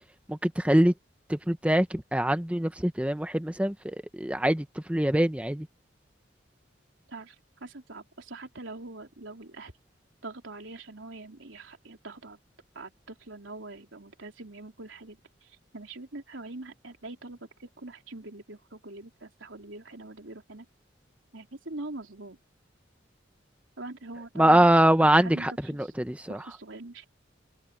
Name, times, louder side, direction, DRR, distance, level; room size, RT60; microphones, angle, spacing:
voice 1, 0.3-0.9 1.3-5.7 24.4-26.4, right 1 dB, 5° right, 0.8 m, -24 dB
voice 2, 7.6-9.7 10.2-12.4 12.8-20.7 21.3-22.4 23.8-24.7 25.0-25.9 26.3-27.1, right 2 dB, 90° right, 3.6 m, -43 dB
head